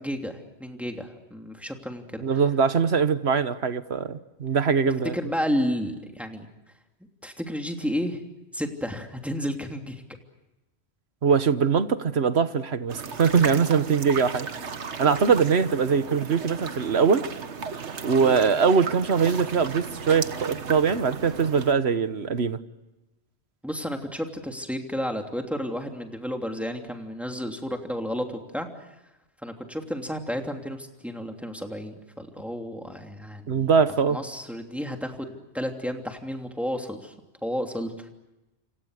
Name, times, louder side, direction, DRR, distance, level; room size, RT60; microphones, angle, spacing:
voice 1, 0.0-2.2 5.1-6.5 7.2-8.2 8.5-10.0 18.2-18.4 23.6-28.7 29.4-33.7 34.1-37.1 37.4-38.1, equal, ahead, 3 dB, 2.9 m, -32 dB
voice 2, 2.2-5.1 11.2-14.5 15.0-17.3 18.0-22.6 33.5-34.2, right 6 dB, 70° right, 12 dB, 1.5 m, -22 dB
sound 1, 12.9-21.7, right 5 dB, 85° right, 1.6 m, -35 dB
29.0 x 27.0 x 6.5 m, 1.0 s
omnidirectional pair, 1.2 m